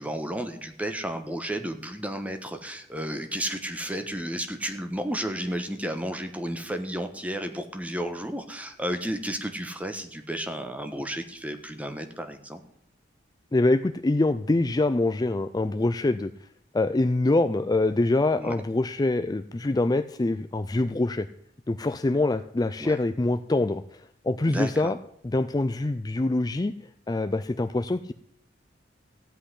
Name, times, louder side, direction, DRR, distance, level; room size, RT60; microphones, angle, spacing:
voice 1, 0.0-12.6 18.3-18.5 22.8-23.0 24.5-24.9, right 1 dB, 10° right, 7 dB, 1.3 m, -32 dB
voice 2, 13.5-16.3 16.7-21.3 21.7-25.0 25.2-28.1, left 2 dB, 20° left, 11 dB, 0.4 m, -25 dB
15.5 x 5.8 x 9.9 m, 0.70 s
head